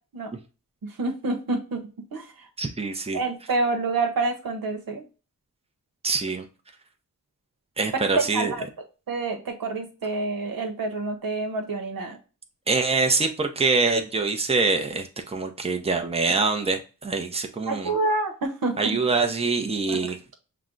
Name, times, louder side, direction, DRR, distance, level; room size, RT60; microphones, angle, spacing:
voice 1, 0.8-2.5 3.1-5.0 7.9-8.7 9.1-12.2 17.7-19.0 19.9-20.1, right 3 dB, 85° right, 3 dB, 0.9 m, -28 dB
voice 2, 2.6-3.2 6.0-6.5 7.8-8.5 12.7-17.9 18.8-20.2, right 3 dB, 20° right, 4 dB, 0.6 m, -24 dB
5.8 x 2.2 x 3.8 m, 0.34 s
wide cardioid pair, 70°, 34 cm